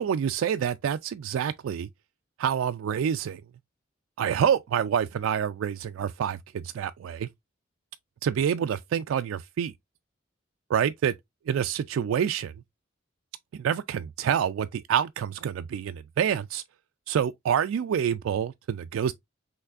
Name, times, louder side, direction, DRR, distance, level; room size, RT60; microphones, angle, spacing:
voice 1, 0.0-1.9 2.4-3.4 4.2-7.3 8.2-9.7 10.7-11.1 11.5-12.5 13.5-16.6 17.1-19.1, right 8 dB, 85° right, 0.3 m, -27 dB
5.7 x 3.2 x 2.4 m
head